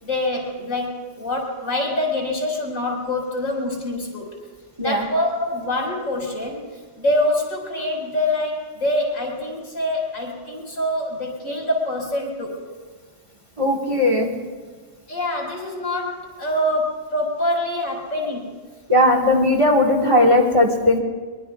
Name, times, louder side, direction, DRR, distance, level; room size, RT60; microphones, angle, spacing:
voice 1, 0.0-4.3 4.8-12.6 15.1-18.5, left 1 dB, 80° left, 0 dB, 5.4 m, -25 dB
voice 2, 13.6-14.3 18.9-21.0, left 1 dB, 25° right, 1 dB, 1.7 m, -17 dB
24.0 x 24.0 x 2.4 m, 1.5 s
omnidirectional pair, 1.4 m